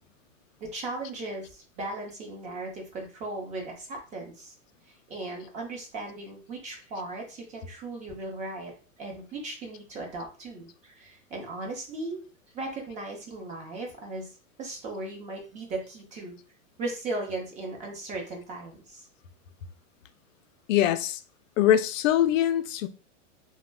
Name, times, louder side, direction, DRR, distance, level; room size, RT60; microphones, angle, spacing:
voice 1, 0.6-4.5 4.9-12.2 12.5-16.4 16.8-19.1, right 2 dB, 20° right, 0.6 m, -37 dB
voice 2, 20.7-21.2 21.6-22.9, left 11 dB, 80° left, 0.5 m, -23 dB
2.3 x 2.1 x 3.3 m
hypercardioid pair, 145°, 38 cm